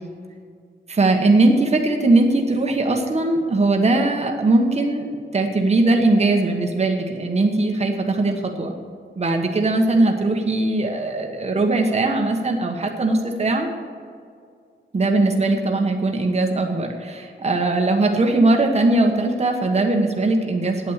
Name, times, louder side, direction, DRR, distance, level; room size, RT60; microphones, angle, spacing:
voice 1, 0.9-8.7 9.2-13.7 14.9-20.9, right 2 dB, 35° right, 2 dB, 1.2 m, -20 dB
8.7 x 8.7 x 8.2 m, 2.2 s
wide cardioid pair, 125°, 19 cm